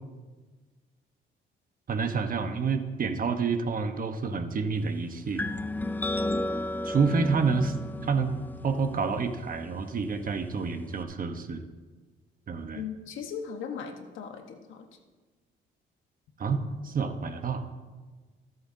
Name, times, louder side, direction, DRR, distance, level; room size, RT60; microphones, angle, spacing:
voice 1, 1.9-5.5 6.8-7.7 8.0-8.4 8.6-11.6 12.5-12.8 16.4-17.6, right 5 dB, 45° right, 7 dB, 1.1 m, -28 dB
sound 1, 5.4-11.0, left 1 dB, 10° left, 0.4 m, -34 dB
voice 2, 12.7-14.9, left 7 dB, 80° left, 5 dB, 1.3 m, -38 dB
23.5 x 7.9 x 2.8 m, 1.3 s
cardioid pair, 90°, 20 cm